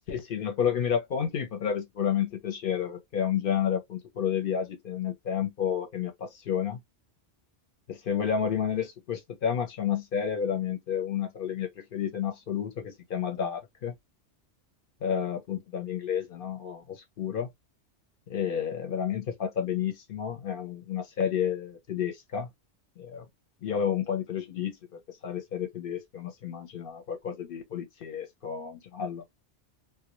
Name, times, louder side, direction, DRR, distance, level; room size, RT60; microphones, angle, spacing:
voice 1, 0.1-6.8 7.9-14.0 15.0-17.5 18.3-22.5 23.0-23.2 23.6-29.2, left 8 dB, 55° left, 0.7 m, -31 dB
2.2 x 2.1 x 2.9 m
omnidirectional pair, 1.2 m